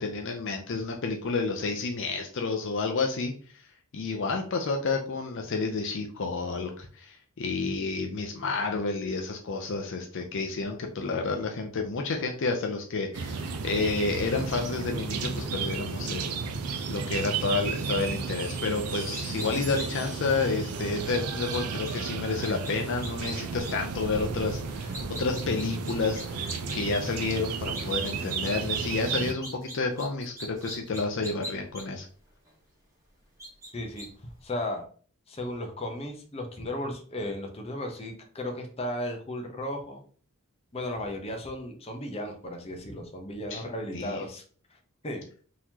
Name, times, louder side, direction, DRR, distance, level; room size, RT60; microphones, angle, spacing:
voice 1, 0.0-3.3 3.9-16.3 16.9-32.1 43.5-43.6 43.9-44.2, left 3 dB, 60° left, 3 dB, 0.5 m, -30 dB
sound 1, 13.1-29.3, right 5 dB, 90° right, 0.5 m, -33 dB
Chime, 16.5-24.2 25.5-26.1, right 5 dB, 35° right, 0.5 m, -48 dB
sound 2, 19.1-19.5 19.7-19.9 20.2-20.3 21.5-21.9 22.4-22.7 23.0-23.3 23.6-23.7 24.7-27.0 27.2-27.3 27.7-28.8 29.1-31.8 32.5-32.6 33.4-33.7 34.0-34.1, right 1 dB, 15° right, 1.3 m, -40 dB
voice 2, 33.7-34.1 34.4-34.8 35.3-40.0 40.7-44.4 44.7-44.8 45.0-45.2, left 1 dB, 25° left, 3 dB, 0.7 m, -35 dB
3.9 x 3.0 x 2.8 m, 0.43 s
head